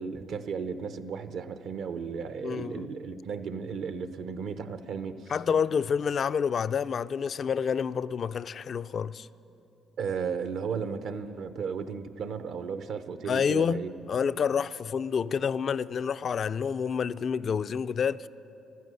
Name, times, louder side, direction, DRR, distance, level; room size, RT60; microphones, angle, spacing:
voice 1, 0.0-5.3 10.0-13.9, right 6 dB, 70° right, 0.8 m, -34 dB
voice 2, 2.4-2.9 5.3-9.3 13.3-18.3, left 7 dB, 50° left, 0.4 m, -28 dB
14.0 x 13.0 x 7.8 m
supercardioid pair, 75°, 0 cm